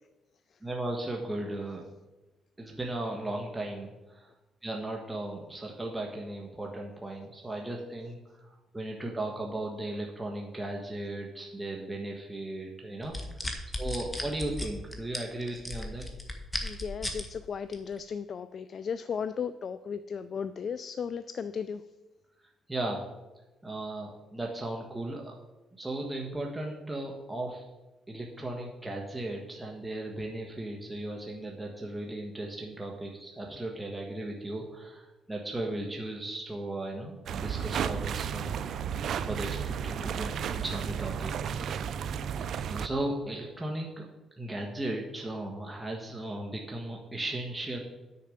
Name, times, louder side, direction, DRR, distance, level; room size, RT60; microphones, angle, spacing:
voice 1, 0.6-1.8 2.6-4.3 4.6-8.2 8.7-13.2 13.8-16.0 22.7-23.0 23.6-25.3 25.8-27.7 28.1-38.6 39.2-41.8 42.5-44.0 44.4-47.8, right 1 dB, 10° right, -1 dB, 1.4 m, -36 dB
sound 1, 13.0-17.3 17.7-18.0, left 1 dB, 10° left, 1.6 m, -35 dB
voice 2, 16.6-21.8, left 6 dB, 50° left, 13 dB, 0.4 m, -35 dB
sound 2, 37.3-42.9, right 8 dB, 65° right, 0.5 m, -33 dB
10.0 x 6.7 x 5.0 m, 1.1 s
cardioid pair, 90°, 0 cm